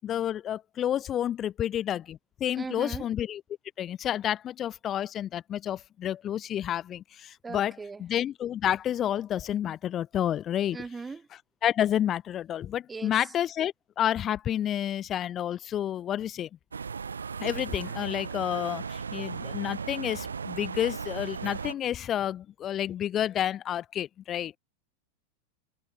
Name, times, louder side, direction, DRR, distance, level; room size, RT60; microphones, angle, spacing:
voice 1, 0.0-3.4 3.8-10.8 11.6-16.5 17.4-24.6, left 10 dB, 30° left, 5.5 m, -30 dB
voice 2, 2.6-3.1 7.4-8.0 10.7-11.3 12.9-13.1, right 4 dB, 15° right, 6.9 m, -38 dB
sound 1, 16.7-21.7, right 5 dB, 75° right, 6.7 m, -36 dB
figure-of-eight pair, 90°, 0 cm